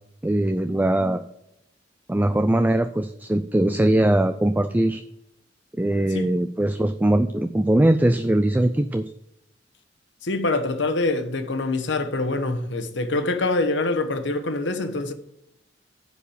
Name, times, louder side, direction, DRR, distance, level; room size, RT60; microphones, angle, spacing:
voice 1, 0.2-1.2 2.1-5.0 5.8-9.1, right 1 dB, 10° right, 0.3 m, -21 dB
voice 2, 10.2-15.1, left 2 dB, 75° left, 1.1 m, -25 dB
10.0 x 4.7 x 6.9 m
head